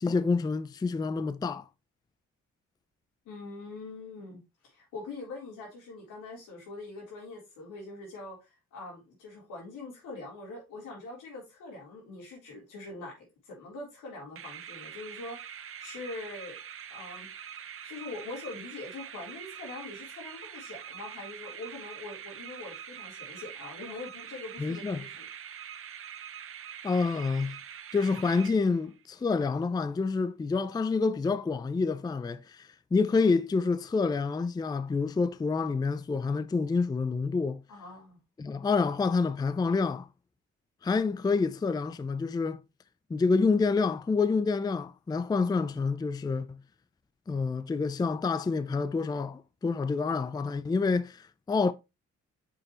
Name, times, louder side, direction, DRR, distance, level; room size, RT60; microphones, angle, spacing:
voice 1, 0.0-1.7 24.6-25.0 26.8-27.6 27.9-37.6 38.4-40.1 40.8-42.6 43.1-46.6 47.3-51.7, left 4 dB, 15° left, 0.4 m, -28 dB
voice 2, 3.3-4.4 4.7-16.6 16.9-17.3 17.8-25.2 37.7-38.2, left 3 dB, 85° left, 3.6 m, -43 dB
sound 1, 14.4-29.0, right 9 dB, 45° right, 0.8 m, -44 dB
6.2 x 5.3 x 3.0 m
cardioid pair, 90°, 30 cm